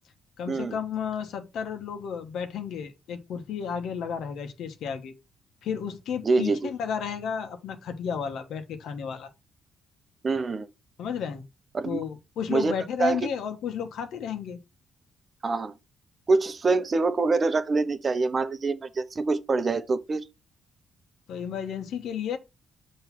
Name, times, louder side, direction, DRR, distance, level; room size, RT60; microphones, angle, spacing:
voice 1, 0.4-5.1 5.6-9.3 11.0-11.4 11.8-14.6 21.3-22.4, left 7 dB, 75° left, 1.2 m, -32 dB
voice 2, 6.2-6.7 10.2-10.7 11.7-12.0 12.5-12.7 13.0-13.2 15.4-15.7 16.3-20.2, right 3 dB, 35° right, 0.8 m, -25 dB
6.1 x 3.2 x 5.8 m
cardioid pair, 90°, 0 cm